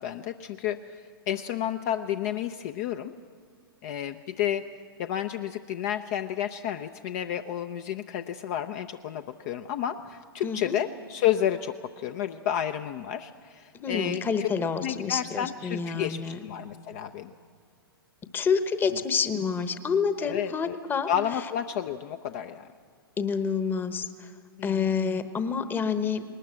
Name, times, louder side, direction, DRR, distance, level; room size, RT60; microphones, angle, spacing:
voice 1, 0.0-3.1 3.8-4.7 5.0-14.5 14.8-17.3 18.9-19.0 20.2-20.8 21.1-22.7 24.6-25.0, left 10 dB, 45° left, 8 dB, 0.6 m, -31 dB
voice 2, 10.4-10.8 13.8-16.4 18.3-21.1 23.2-24.1 24.6-26.2, left 6 dB, 15° left, 11 dB, 1.1 m, -28 dB
19.5 x 19.5 x 7.6 m, 2.1 s
figure-of-eight pair, 115°, 13 cm